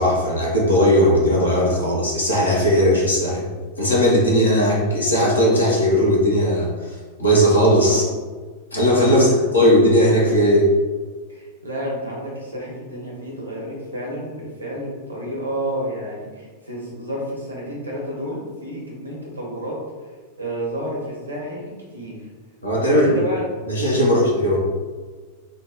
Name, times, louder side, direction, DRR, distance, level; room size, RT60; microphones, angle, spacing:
voice 1, 0.0-3.4 3.8-8.0 8.7-10.7 22.6-23.2 23.7-24.6, equal, 80° left, -4 dB, 1.0 m, -17 dB
voice 2, 9.1-9.5 11.3-19.8 20.0-22.2 22.7-23.6 24.0-24.3, right 1 dB, 85° right, -3 dB, 1.3 m, -31 dB
3.9 x 2.4 x 4.1 m, 1.4 s
figure-of-eight pair, 90°, 0 cm